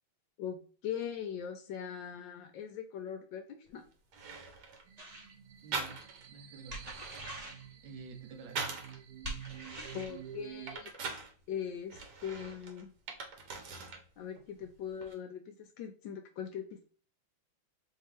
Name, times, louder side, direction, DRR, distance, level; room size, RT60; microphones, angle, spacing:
voice 1, 0.4-3.8 9.9-10.9 11.5-12.9 14.2-16.8, left 8 dB, 75° left, 1.1 m, -41 dB
sound 1, 3.7-3.8 4.1-4.9 5.7-6.3 6.7-9.0 9.5-11.3 11.9-14.1 14.4-15.1, right 4 dB, 60° right, 1.3 m, -42 dB
sound 2, 4.8-10.8, right 10 dB, 90° right, 1.9 m, -49 dB
sound 3, 5.0-5.3 6.7-7.6 9.2-10.1, right 1 dB, 40° right, 0.6 m, -43 dB
voice 2, 5.6-7.3 7.8-8.9, right 4 dB, 75° right, 1.3 m, -51 dB
4.6 x 2.8 x 3.0 m
omnidirectional pair, 2.4 m